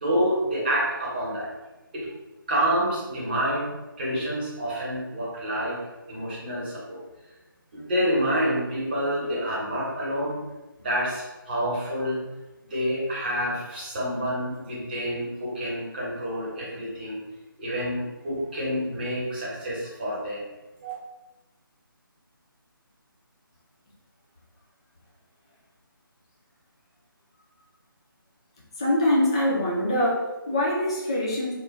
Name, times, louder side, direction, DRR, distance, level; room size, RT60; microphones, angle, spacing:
voice 1, 0.0-1.5 1.9-2.1 2.5-5.8 6.1-7.0 7.7-10.4 10.8-12.2 12.7-17.2 17.6-20.4 20.8-20.9, equal, 25° right, -6 dB, 0.9 m, -28 dB
voice 2, 28.8-31.5, left 1 dB, 15° left, -5 dB, 0.3 m, -24 dB
3.4 x 2.2 x 3.0 m, 1.1 s
figure-of-eight pair, 155°, 12 cm